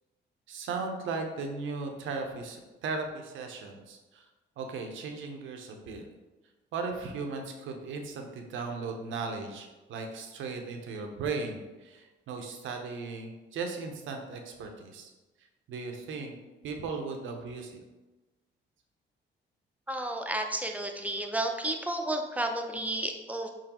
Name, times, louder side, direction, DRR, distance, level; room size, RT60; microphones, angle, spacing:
voice 1, 0.5-4.2 4.6-6.0 6.7-15.1 15.7-16.4 16.6-17.8, right 4 dB, 75° right, 4 dB, 0.7 m, -37 dB
voice 2, 19.9-23.5, right 1 dB, 5° right, 4 dB, 0.5 m, -32 dB
4.5 x 3.8 x 2.9 m, 1.2 s
cardioid pair, 90°, 20 cm